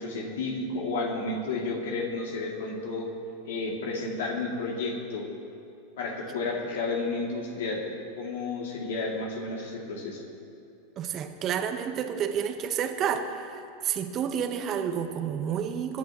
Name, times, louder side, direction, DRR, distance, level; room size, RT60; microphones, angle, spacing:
voice 1, 0.0-3.1 3.4-5.3 6.0-7.9 8.2-10.2, left 3 dB, 70° left, -1 dB, 2.8 m, -31 dB
voice 2, 11.0-16.0, right 8 dB, 40° right, 6 dB, 1.3 m, -30 dB
25.5 x 11.0 x 3.1 m, 2.6 s
hypercardioid pair, 90°, 0 cm